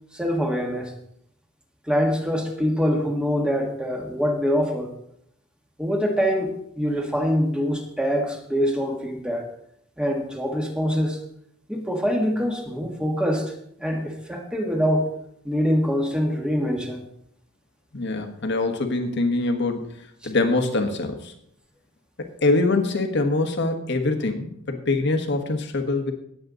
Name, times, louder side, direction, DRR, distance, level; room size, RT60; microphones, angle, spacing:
voice 1, 0.1-0.9 1.9-4.9 5.8-9.5 10.0-11.2 11.7-13.5 13.8-15.1 15.4-17.0 20.2-20.3, equal, 5° right, 2 dB, 1.7 m, -24 dB
voice 2, 17.9-19.8 20.2-21.3 22.2-26.1, left 2 dB, 60° left, 6 dB, 1.6 m, -24 dB
18.5 x 7.9 x 4.0 m, 0.72 s
head